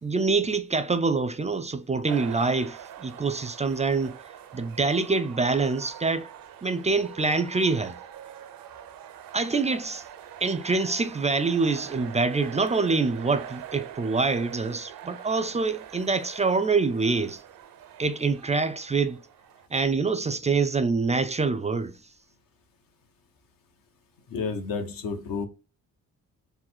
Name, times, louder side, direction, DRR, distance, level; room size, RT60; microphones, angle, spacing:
voice 1, 0.0-4.2 4.5-6.3 6.6-7.9 9.3-10.0 10.4-17.4 18.0-19.2 19.7-21.9, right 4 dB, 20° right, 0.4 m, -25 dB
sound 1, 2.1-19.7, right 10 dB, 80° right, 0.6 m, -44 dB
voice 2, 24.3-25.5, left 5 dB, 75° left, 1.0 m, -30 dB
4.0 x 2.2 x 4.2 m
cardioid pair, 85°, 34 cm